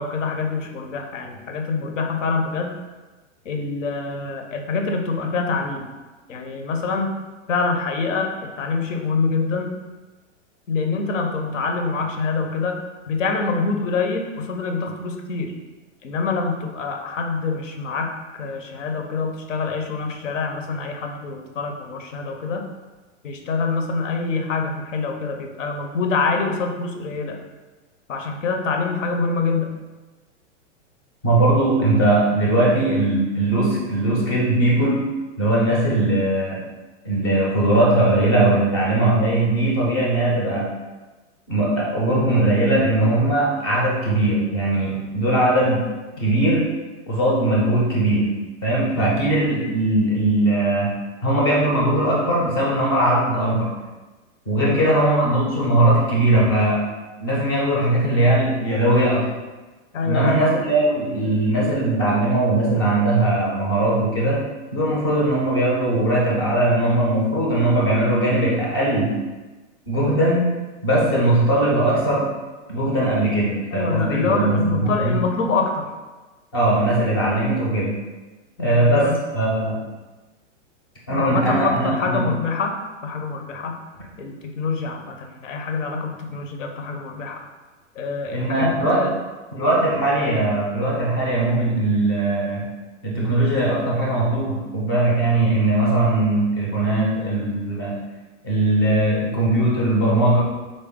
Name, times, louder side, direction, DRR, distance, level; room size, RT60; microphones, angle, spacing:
voice 1, 0.0-2.7 3.4-5.9 6.3-7.1 7.5-9.7 10.7-12.8 13.1-15.5 16.0-22.6 23.2-27.4 28.1-29.7 54.6-55.2 59.9-60.6 73.7-75.9 78.6-79.2 81.1-83.8 84.2-87.4 87.9-89.1, left 4 dB, 75° left, 3 dB, 0.7 m, -25 dB
voice 2, 31.2-35.0 35.4-36.6 37.0-40.7 41.5-45.8 46.2-46.7 47.1-48.3 48.6-53.7 54.5-56.8 57.2-59.3 60.0-64.4 64.7-69.2 69.9-70.5 70.8-72.3 72.7-75.2 76.5-78.0 78.6-79.8 81.1-82.3 88.3-89.1 89.5-92.6 93.0-98.0 98.4-100.4, right 1 dB, 20° left, -4 dB, 0.4 m, -20 dB
3.9 x 2.1 x 3.5 m, 1.2 s
supercardioid pair, 170°, 37 cm